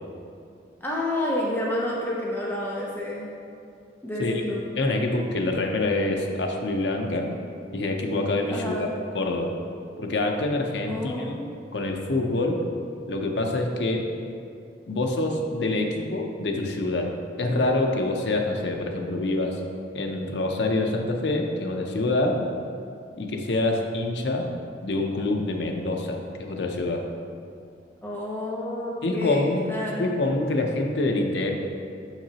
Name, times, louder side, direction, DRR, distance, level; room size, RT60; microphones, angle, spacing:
voice 1, 0.8-3.3 4.0-4.6 8.5-8.9 10.9-11.5 28.0-30.1, left 1 dB, 10° left, -5 dB, 0.6 m, -29 dB
voice 2, 4.8-7.3 7.7-8.9 9.1-9.5 10.0-11.4 11.7-12.6 13.1-14.0 14.9-17.1 17.4-19.6 19.9-22.4 23.2-24.5 24.8-27.0 29.0-29.7 30.0-31.5, left 2 dB, 70° left, 2 dB, 0.7 m, -26 dB
6.8 x 5.9 x 2.9 m, 2.5 s
head